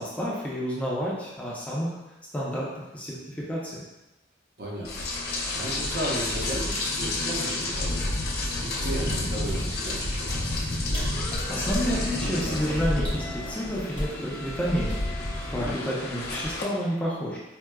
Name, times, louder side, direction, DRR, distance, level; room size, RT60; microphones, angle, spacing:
voice 1, 0.0-2.0 2.3-3.8 11.5-17.4, equal, 10° left, -7 dB, 0.5 m, -30 dB
voice 2, 4.6-5.1 5.4-8.2 8.6-10.4, right 1 dB, 60° right, -4 dB, 0.7 m, -34 dB
Rain, 4.8-16.6, left 2 dB, 60° left, 0.5 m, -30 dB
sound 1, 9.0-10.0 10.7-10.8 10.9-11.9 13.0-13.3 13.9-14.2 14.9-15.3 15.7-16.0, equal, 25° right, 0.8 m, -33 dB
4.5 x 2.0 x 2.2 m, 1.0 s
head